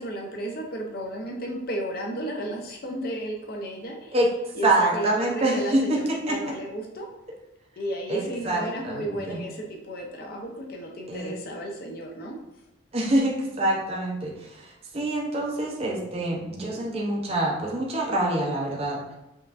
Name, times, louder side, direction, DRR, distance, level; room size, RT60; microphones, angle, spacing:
voice 1, 0.0-4.2 4.5-7.1 7.8-12.3, right 1 dB, 45° left, 0 dB, 0.5 m, -33 dB
voice 2, 4.6-6.4 8.1-9.4 11.1-11.3 12.9-19.0, right 1 dB, 30° right, -2 dB, 0.4 m, -26 dB
5.3 x 2.4 x 2.4 m, 0.93 s
head